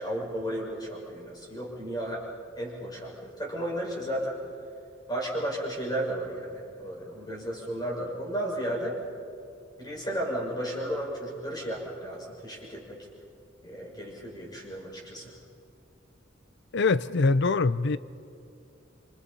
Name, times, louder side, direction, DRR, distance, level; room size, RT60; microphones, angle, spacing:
voice 1, 0.0-2.3 2.6-4.4 5.1-9.0 9.8-13.0 13.6-15.3, right 1 dB, 20° left, -3 dB, 5.9 m, -33 dB
voice 2, 16.7-18.0, left 3 dB, 60° left, 16 dB, 0.6 m, -23 dB
27.0 x 26.0 x 5.6 m, 2.5 s
head